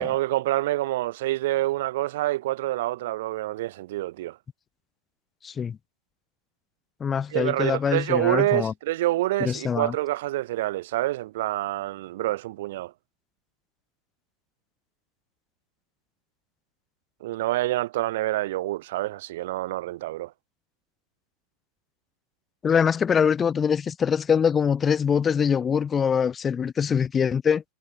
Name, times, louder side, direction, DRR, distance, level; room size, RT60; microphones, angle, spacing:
voice 1, 0.0-4.4 7.3-12.9 17.2-20.3, right 16 dB, 55° right, 0.8 m, -27 dB
voice 2, 5.4-5.8 7.0-8.7 9.4-9.9 22.6-27.6, left 7 dB, 20° left, 1.3 m, -23 dB
figure-of-eight pair, 90°, 0 cm